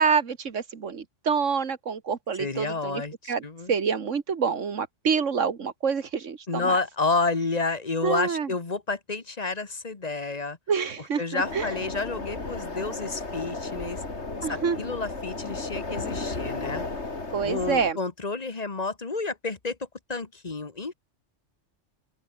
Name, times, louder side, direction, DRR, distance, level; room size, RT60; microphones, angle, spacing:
voice 1, 0.0-3.0 3.3-3.4 3.7-6.8 8.0-8.5 10.7-11.7 14.4-14.8 17.3-18.0, right 6 dB, 85° right, 2.0 m, -27 dB
voice 2, 2.4-3.7 6.5-10.6 11.2-14.0 14.5-16.8 17.4-19.8 20.1-20.9, left 3 dB, 35° left, 1.5 m, -30 dB
sound 1, 11.4-17.9, left 3 dB, 65° left, 3.6 m, -34 dB
open air
omnidirectional pair, 1.2 m